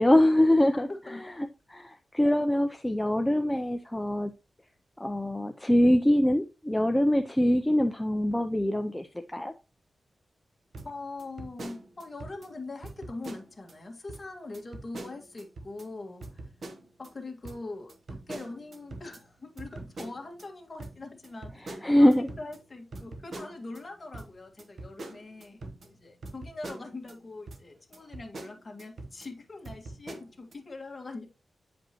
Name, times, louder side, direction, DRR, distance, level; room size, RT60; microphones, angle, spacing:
voice 1, 0.0-1.3 1.7-4.3 5.0-9.5 21.7-22.3, left 1 dB, 10° left, 5 dB, 0.5 m, -24 dB
voice 2, 0.7-1.4 10.8-16.4 17.0-17.9 18.3-31.3, left 2 dB, 30° left, 1 dB, 1.7 m, -42 dB
sound 1, 10.7-12.5 12.8-13.7 14.1-14.2 14.5-15.9 16.2-17.1 17.4-20.5 20.8-23.8 24.1-27.2 27.5-27.6 27.9-29.3 29.6-30.5, right 2 dB, 55° right, 1.0 m, -44 dB
8.8 x 5.1 x 2.9 m, 0.28 s
wide cardioid pair, 120°, 0 cm